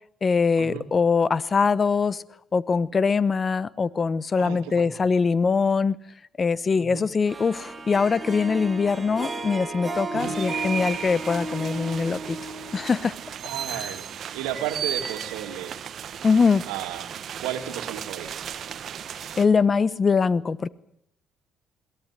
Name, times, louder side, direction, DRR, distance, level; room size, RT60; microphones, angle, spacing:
voice 1, 0.2-2.2 2.5-6.0 6.4-12.4 12.7-13.1 13.7-13.9 16.2-16.6 19.4-20.7, left 5 dB, 40° left, 19 dB, 1.0 m, -22 dB
voice 2, 4.4-4.9 6.7-7.0 10.1-10.4 13.4-15.7 16.7-17.1 17.4-18.4, right 11 dB, 90° right, 7 dB, 2.5 m, -34 dB
Harp, 7.3-13.6, right 2 dB, 25° right, 4.5 m, -34 dB
sound 1, 10.2-19.5, right 8 dB, 60° right, 1.6 m, -35 dB
22.0 x 17.0 x 9.8 m, 0.69 s
supercardioid pair, 65°, 0 cm